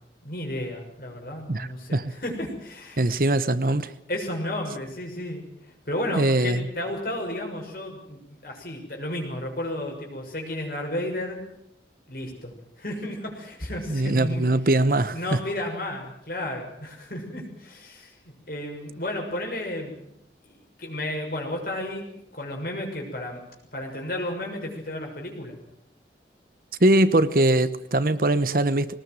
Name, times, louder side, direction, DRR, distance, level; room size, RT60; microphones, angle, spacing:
voice 1, 0.2-3.1 4.1-5.4 5.8-11.4 12.1-14.5 15.1-18.1 18.5-20.1 20.4-23.4 23.7-25.6, left 1 dB, 55° left, 6.7 m, -33 dB
voice 2, 1.5-2.1 3.0-3.9 6.1-6.7 13.9-15.4 26.8-28.9, right 1 dB, 50° right, 1.0 m, -22 dB
21.5 x 19.5 x 9.4 m
head